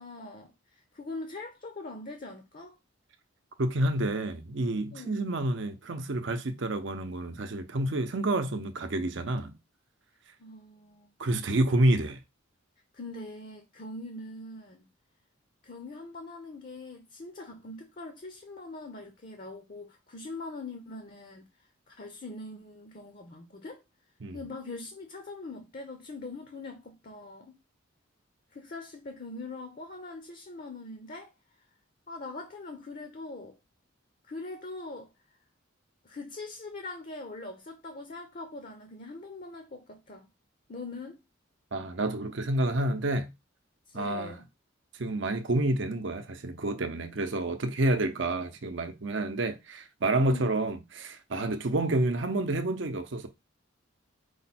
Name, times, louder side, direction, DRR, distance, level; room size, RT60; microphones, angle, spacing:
voice 1, 0.0-2.8 4.9-5.2 10.4-11.1 12.9-14.9 15.6-21.5 21.9-23.8 24.3-27.6 28.5-31.3 32.1-33.6 34.3-35.1 36.0-40.3 40.7-41.2 43.9-44.4 50.2-50.5, left 2 dB, 40° left, 0.6 m, -42 dB
voice 2, 3.6-9.6 11.2-12.2 24.2-24.4 41.7-43.3 43.9-44.4 45.0-53.3, right 2 dB, 65° right, 0.7 m, -29 dB
4.9 x 2.2 x 4.1 m
head